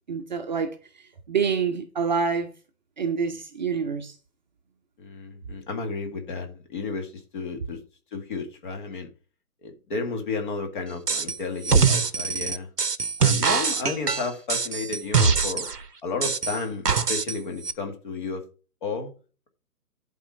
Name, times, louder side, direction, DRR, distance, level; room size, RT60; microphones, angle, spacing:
voice 1, 0.1-0.7 1.3-2.5 3.0-4.1, right 6 dB, 30° right, 0.9 m, -26 dB
voice 2, 5.0-7.8 8.1-9.1 9.6-12.7 13.2-15.7 16.0-18.4 18.8-19.1, left 4 dB, 35° left, 2.0 m, -32 dB
sound 1, 11.1-11.4 11.6-15.8 16.2-17.4 17.6-17.7, right 5 dB, 90° right, 0.9 m, -23 dB
11.0 x 4.3 x 5.4 m
figure-of-eight pair, 140°, 46 cm